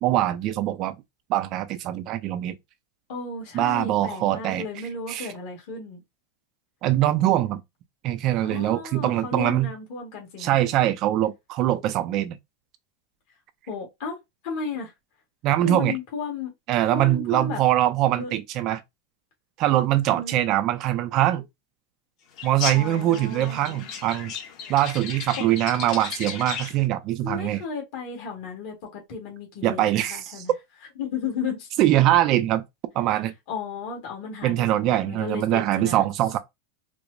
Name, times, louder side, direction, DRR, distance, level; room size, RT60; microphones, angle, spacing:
voice 1, 0.0-1.0 1.3-2.6 3.5-4.7 5.1-5.3 6.8-7.6 8.0-9.7 10.4-12.4 15.4-16.0 16.7-18.8 19.6-21.5 22.4-24.3 24.7-27.6 29.6-30.4 31.8-32.6 32.9-33.3 34.4-36.4, right 13 dB, 35° right, 0.4 m, -23 dB
voice 2, 3.1-6.0 8.4-10.5 13.7-14.2 14.4-14.9 15.6-16.5 16.9-17.6 18.2-18.3 20.1-20.5 22.4-23.9 25.4-25.5 27.2-30.5 31.0-31.7 33.5-36.0, left 5 dB, 55° left, 1.5 m, -34 dB
sound 1, 22.4-26.9, left 7 dB, 40° left, 0.9 m, -35 dB
4.5 x 2.0 x 2.5 m
supercardioid pair, 160°, 0 cm